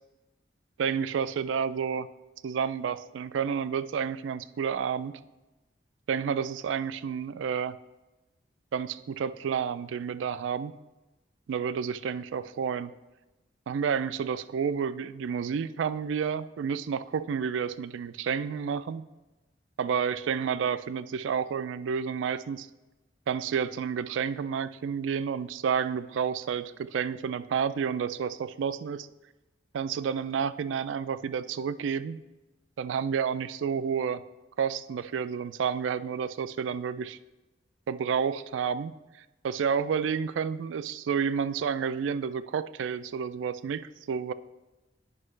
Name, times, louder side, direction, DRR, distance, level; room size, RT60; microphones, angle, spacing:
voice 1, 0.8-2.1 2.4-5.1 6.1-7.8 8.7-10.7 11.5-12.9 13.7-19.0 19.8-22.7 23.3-29.1 29.7-32.2 32.8-34.2 34.6-37.2 37.9-38.9 39.4-44.3, right 7 dB, 90° right, 15 dB, 0.3 m, -30 dB
9.8 x 5.5 x 3.2 m, 1.1 s
head